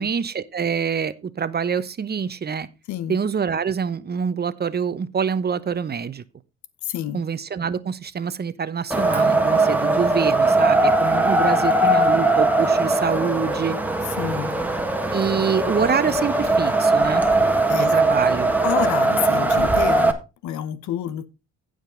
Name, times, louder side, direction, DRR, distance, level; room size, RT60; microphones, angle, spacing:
voice 1, 0.0-2.7 3.1-6.2 7.1-13.8 15.1-17.2 17.7-18.5, right 6 dB, 30° right, 0.9 m, -25 dB
voice 2, 6.8-7.2 11.6-11.7 14.2-14.5 17.7-17.9 18.6-20.1 20.4-21.3, left 11 dB, 65° left, 1.0 m, -28 dB
Wind, 8.9-20.1, right 2 dB, 5° right, 1.7 m, -20 dB
15.5 x 5.2 x 3.9 m
supercardioid pair, 70°, 31 cm